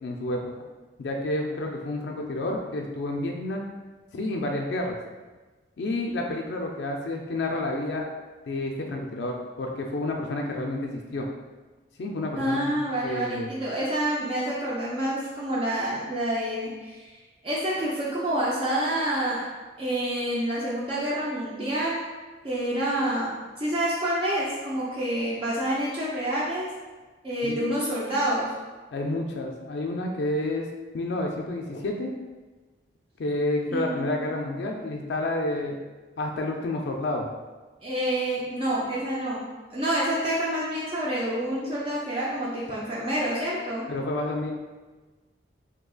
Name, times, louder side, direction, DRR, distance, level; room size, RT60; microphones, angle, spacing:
voice 1, 0.0-0.5 1.0-3.6 4.1-5.0 5.8-8.0 8.5-11.3 12.0-12.8 13.0-13.5 27.4-27.6 28.9-30.7 30.9-32.1 33.2-35.8 36.2-37.3 43.9-44.5, left 2 dB, 65° left, 1 dB, 0.3 m, -29 dB
voice 2, 12.4-17.1 17.4-19.4 19.8-22.1 22.4-26.7 27.2-28.5 33.7-34.2 37.8-39.4 39.7-43.8, right 1 dB, 30° right, -6 dB, 0.4 m, -28 dB
3.7 x 2.7 x 2.3 m, 1.3 s
head